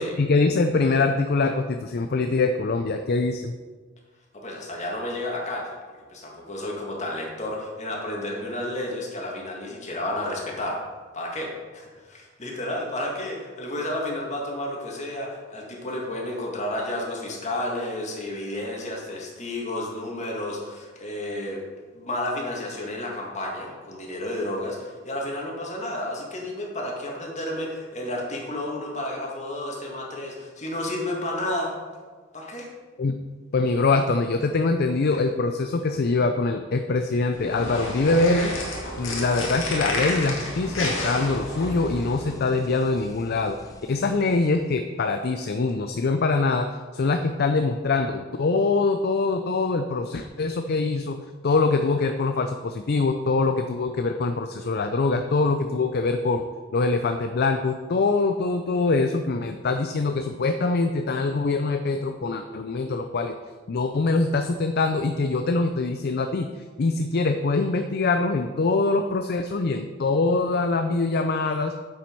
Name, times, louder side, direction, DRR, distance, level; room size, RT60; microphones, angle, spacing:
voice 1, 0.0-3.5 33.0-33.1 33.5-38.6 39.0-43.6 43.9-56.4 56.7-63.4 63.7-71.7, left 3 dB, 50° left, 7 dB, 0.5 m, -24 dB
voice 2, 4.3-5.7 6.1-10.8 11.1-21.6 21.9-31.7 32.3-32.7, left 1 dB, 35° left, -1 dB, 2.1 m, -31 dB
sound 1, 37.3-42.3, left 1 dB, 85° left, 2.0 m, -30 dB
sound 2, 40.2-45.1, equal, 20° left, 0.7 m, -45 dB
9.2 x 7.5 x 4.6 m, 1.5 s
head